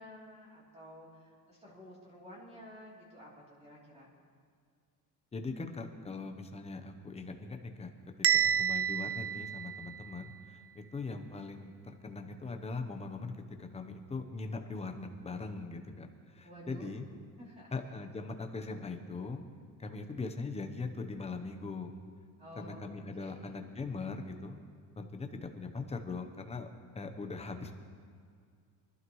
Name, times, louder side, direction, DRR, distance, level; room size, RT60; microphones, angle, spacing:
voice 1, 0.0-4.1 16.4-17.0 17.4-17.8 22.4-23.7, equal, 15° right, -5 dB, 3.1 m, -51 dB
voice 2, 5.3-7.9 8.3-13.3 13.6-17.1 17.7-19.4 19.8-21.9 22.6-24.6 25.0-26.7 26.9-27.7, left 3 dB, 15° left, 5 dB, 0.9 m, -41 dB
Bell, 8.2-10.3, right 8 dB, 40° right, 0.4 m, -30 dB
24.0 x 12.0 x 3.1 m, 2.1 s
cardioid pair, 160°, 38 cm